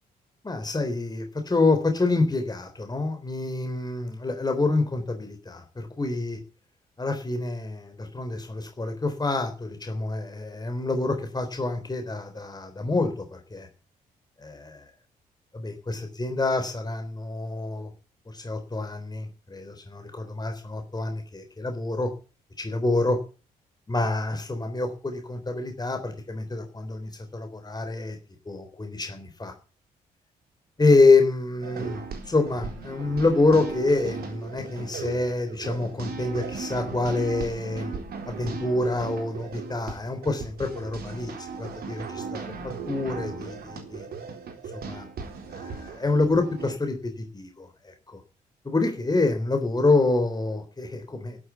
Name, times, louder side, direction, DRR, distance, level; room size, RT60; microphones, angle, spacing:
voice 1, 0.4-6.4 7.0-13.7 14.4-14.8 15.5-17.9 18.3-22.1 22.6-23.2 23.9-28.2 28.5-29.5 30.8-38.0 38.3-42.5 42.9-44.1 44.7-45.1 45.5-48.2 48.6-51.4, left 3 dB, 20° left, 6 dB, 3.7 m, -27 dB
sound 1, 31.6-46.7, right 5 dB, 50° right, 4.0 m, -37 dB
12.5 x 11.0 x 8.1 m, 0.35 s
figure-of-eight pair, 40°, 20 cm